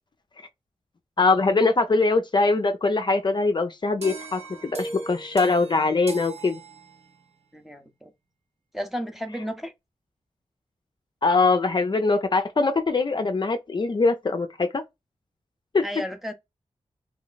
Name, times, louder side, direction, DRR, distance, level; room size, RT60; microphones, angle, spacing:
voice 1, 1.2-6.6 11.2-14.8 15.7-15.8, left 3 dB, 40° left, 0.4 m, -22 dB
sound 1, 4.0-7.3, right 2 dB, 65° right, 0.8 m, -39 dB
voice 2, 7.5-8.1 8.7-9.7 15.8-16.3, equal, ahead, 0.6 m, -33 dB
3.2 x 2.1 x 3.8 m
wide cardioid pair, 90°, 12 cm